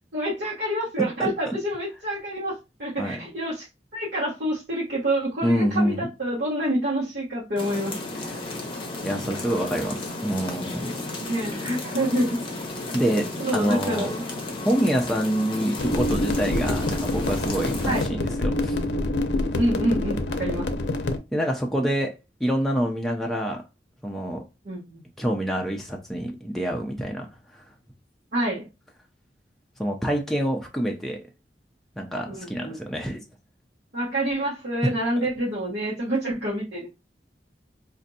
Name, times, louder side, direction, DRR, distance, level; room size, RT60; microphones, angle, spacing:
voice 1, 0.1-3.7 3.9-8.0 11.2-12.4 13.4-14.2 17.8-18.1 19.5-20.7 24.6-25.0 28.3-28.7 32.3-32.8 33.9-36.9, right 1 dB, 65° right, 1.1 m, -27 dB
voice 2, 1.0-1.6 3.0-3.2 5.4-6.1 8.4-8.5 9.0-11.0 12.9-14.1 14.6-18.7 21.3-22.1 22.4-23.6 24.0-24.4 25.2-27.3 29.8-31.2 32.0-33.2, equal, ahead, 0.4 m, -26 dB
sound 1, 7.6-18.1, left 2 dB, 30° left, 0.7 m, -33 dB
sound 2, 15.8-21.2, left 1 dB, 75° left, 0.5 m, -26 dB
4.3 x 2.5 x 2.7 m
head